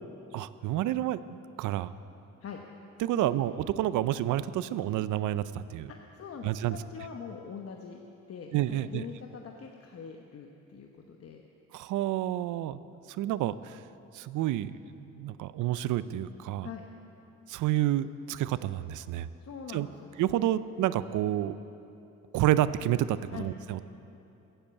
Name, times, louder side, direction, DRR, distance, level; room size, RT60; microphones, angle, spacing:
voice 1, 0.3-1.9 3.0-5.9 6.4-6.8 8.5-9.0 11.7-12.8 13.2-13.8 14.1-16.7 17.5-19.3 19.7-19.9 20.2-21.6 22.3-23.8, right 13 dB, 80° right, 15 dB, 0.5 m, -29 dB
voice 2, 5.9-8.0 8.3-11.4 16.6-16.9 19.4-19.9 23.3-23.5, left 6 dB, 50° left, 2 dB, 1.0 m, -43 dB
15.0 x 8.1 x 8.5 m, 2.8 s
cardioid pair, 90°, 30 cm